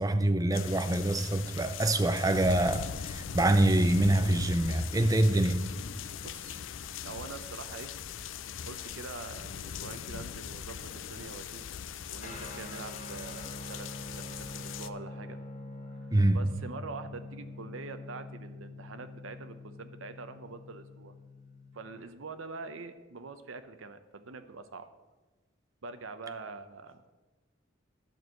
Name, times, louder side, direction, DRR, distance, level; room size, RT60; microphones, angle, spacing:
voice 1, 0.0-5.6 16.1-16.4, right 1 dB, 20° right, 0.5 m, -25 dB
sound 1, 0.5-14.9, left 8 dB, 75° left, 0.4 m, -41 dB
voice 2, 6.2-6.6 7.0-8.0 8.6-11.7 12.1-13.9 14.2-15.4 16.3-21.1 21.7-24.9 25.8-27.1, right 4 dB, 85° right, 0.7 m, -44 dB
Guitar, 12.2-22.0, left 2 dB, 40° left, 1.1 m, -45 dB
11.0 x 4.6 x 7.7 m
head